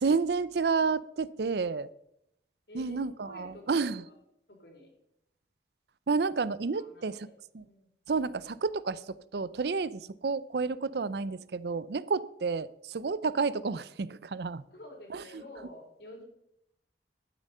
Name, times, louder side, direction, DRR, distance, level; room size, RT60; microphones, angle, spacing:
voice 1, 0.0-1.9 2.7-4.0 6.1-7.3 7.5-7.6 8.1-14.6 15.1-15.4, right 4 dB, 65° right, 18 dB, 0.5 m, -30 dB
voice 2, 3.2-4.1 4.5-4.9 6.7-7.3 7.6-7.9 14.7-16.2, left 1 dB, 65° left, 1 dB, 3.8 m, -49 dB
11.5 x 9.1 x 5.5 m, 0.78 s
head